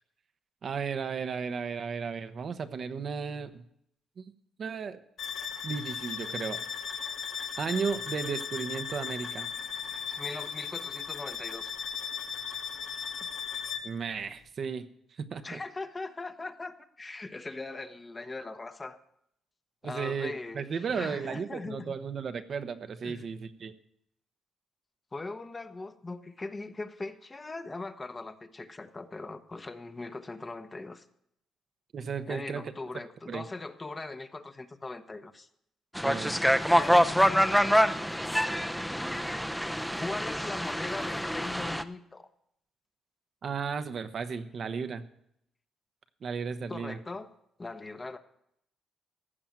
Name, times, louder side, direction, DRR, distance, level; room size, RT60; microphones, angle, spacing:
voice 1, 0.6-3.6 4.2-4.3 4.6-5.0 5.6-6.6 7.6-9.5 13.8-15.6 19.8-23.7 31.9-32.7 33.3-33.5 36.0-36.4 43.4-45.1 46.2-47.0, right 6 dB, 50° right, 9 dB, 0.9 m, -34 dB
sound 1, 5.2-14.0, left 7 dB, 65° left, 1.5 m, -37 dB
voice 2, 10.1-11.7 15.4-19.0 19.8-20.6 20.9-21.9 23.0-23.3 25.1-31.0 32.3-35.5 36.7-37.5 39.9-42.3 46.7-47.3 47.6-48.2, left 3 dB, 25° left, 9 dB, 1.0 m, -40 dB
sound 2, 35.9-41.8, equal, ahead, 0.6 m, -26 dB
15.0 x 6.0 x 8.9 m, 0.74 s
cardioid pair, 90°, 0 cm